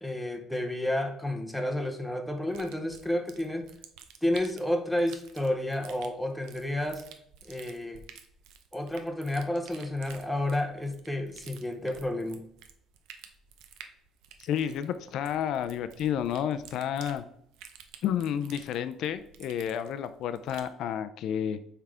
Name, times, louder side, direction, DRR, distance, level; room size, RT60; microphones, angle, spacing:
voice 1, 0.0-3.7 4.2-7.0 7.4-8.0 8.7-12.4, left 1 dB, ahead, 4 dB, 0.6 m, -31 dB
sound 1, 2.5-20.8, right 8 dB, 75° right, 0.8 m, -52 dB
voice 2, 14.4-17.2 18.0-21.6, left 9 dB, 55° left, 12 dB, 0.4 m, -31 dB
5.6 x 4.6 x 4.9 m, 0.69 s
cardioid pair, 170°, 0 cm